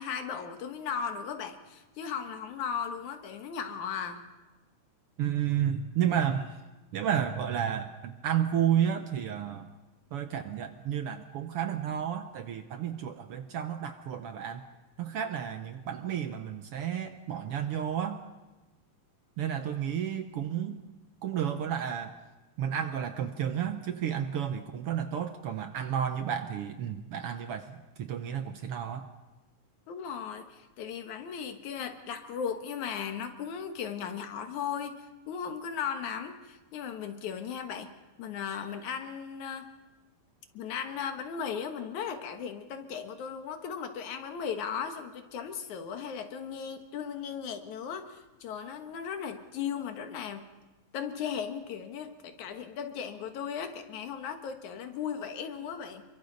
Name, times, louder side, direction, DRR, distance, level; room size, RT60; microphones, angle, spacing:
voice 1, 0.0-4.2 29.9-37.9 38.2-39.7 40.5-50.4 50.9-56.0, left 7 dB, 85° left, 6 dB, 2.8 m, -37 dB
voice 2, 5.2-6.6 6.9-9.7 10.1-14.6 15.0-18.2 19.4-20.8 21.2-22.1 22.6-29.1, right 9 dB, 65° right, 8 dB, 1.5 m, -31 dB
28.0 x 23.0 x 4.0 m, 1.1 s
omnidirectional pair, 3.3 m